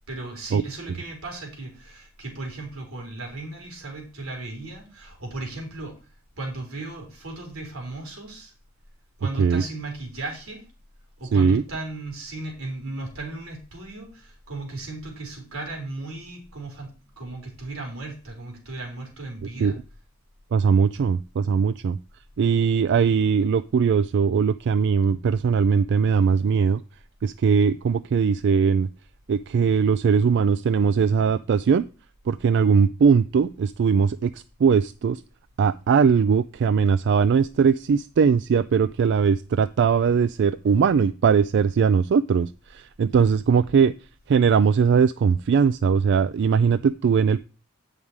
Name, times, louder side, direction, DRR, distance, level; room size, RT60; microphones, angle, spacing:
voice 1, 0.1-6.0 6.3-8.5 9.2-10.6 11.2-16.9 17.2-19.8, right 2 dB, 85° right, 1 dB, 3.6 m, -36 dB
voice 2, 11.3-11.6 19.6-19.8 20.5-22.0 22.4-26.8 27.2-28.9 29.3-31.8 32.3-35.2 35.6-43.9 44.3-47.4, right 6 dB, 55° right, 14 dB, 0.3 m, -20 dB
8.8 x 5.5 x 4.7 m, 0.35 s
head